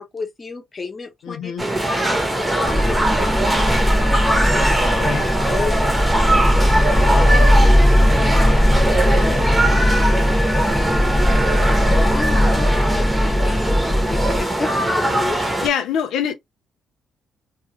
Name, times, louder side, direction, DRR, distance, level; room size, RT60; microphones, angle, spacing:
voice 1, 0.0-1.5 1.9-5.1 5.5-6.1 6.4-15.7, left 4 dB, 30° left, 0.8 m, -33 dB
voice 2, 1.3-1.6 5.0-5.3 15.6-16.3, left 8 dB, 80° left, 0.4 m, -24 dB
sound 1, 1.6-15.7, right 1 dB, 15° right, 0.8 m, -21 dB
sound 2, 2.7-14.4, left 1 dB, 10° left, 0.5 m, -18 dB
2.3 x 2.3 x 2.9 m
cardioid pair, 90°, 0 cm